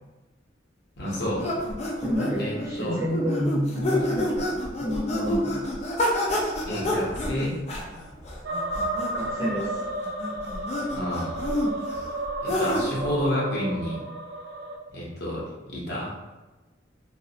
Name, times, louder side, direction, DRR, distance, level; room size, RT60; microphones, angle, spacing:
voice 1, 1.0-1.4 2.4-3.0 6.6-7.6 10.9-11.4 12.4-14.0 14.9-16.1, equal, 60° left, -5 dB, 0.8 m, -30 dB
sound 1, 1.1-13.1, left 1 dB, 35° left, 0.4 m, -29 dB
voice 2, 2.0-4.5 4.8-5.5 9.1-9.7, equal, 15° right, -7 dB, 0.7 m, -29 dB
sound 2, 8.4-14.8, right 2 dB, 65° right, 0.4 m, -32 dB
2.4 x 2.0 x 2.7 m, 1.1 s
head